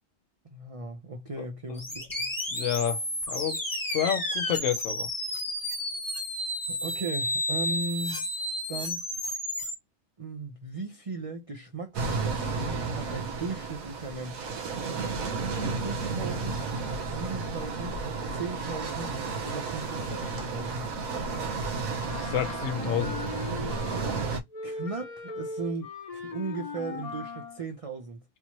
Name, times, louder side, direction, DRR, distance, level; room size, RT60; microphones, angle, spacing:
voice 1, 0.5-2.3 6.7-8.2 8.7-9.0 10.2-14.5 15.8-16.7 17.1-18.0 18.3-19.1 19.4-20.9 24.6-28.2, right 3 dB, 35° right, 0.5 m, -37 dB
voice 2, 1.4-1.8 2.5-3.6 3.9-5.1 22.1-23.3, left 9 dB, 65° left, 1.1 m, -30 dB
sound 1, 1.8-9.7, left 1 dB, 15° left, 1.2 m, -32 dB
sound 2, 11.9-24.4, right 4 dB, 75° right, 1.3 m, -32 dB
Wind instrument woodwind instrument, 22.0-24.2 24.5-27.6, left 4 dB, 40° left, 0.5 m, -39 dB
3.8 x 2.9 x 3.0 m
omnidirectional pair, 1.5 m